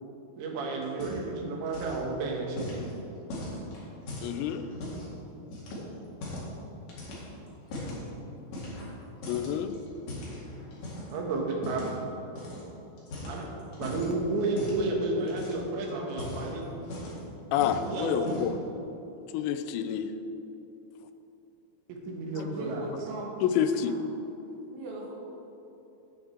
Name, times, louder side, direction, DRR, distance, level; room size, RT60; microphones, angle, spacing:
voice 1, 0.4-2.8 11.1-11.8 13.2-13.5 13.8-16.9 17.8-18.4 21.9-22.9, right 2 dB, 90° right, 0 dB, 3.6 m, -32 dB
sound 1, 0.8-1.4 1.7-2.1 2.6-5.1 5.5-6.5 6.9-8.0 8.5-9.0 9.2-11.1 11.6-11.9 12.4-12.6 13.0-14.1 14.6-14.9 15.2-15.7 16.1-17.3 17.6-17.9 18.2-18.6, left 1 dB, 50° left, 2.9 m, -39 dB
voice 2, 4.2-4.7 9.3-9.7 17.5-18.5 19.3-20.1 23.6-24.0, left 8 dB, 90° left, 9 dB, 2.9 m, -28 dB
voice 3, 22.3-23.3 23.8-24.0 24.7-25.1, right 1 dB, 60° right, -3 dB, 2.9 m, -39 dB
10.0 x 9.1 x 4.4 m, 3.0 s
omnidirectional pair, 5.0 m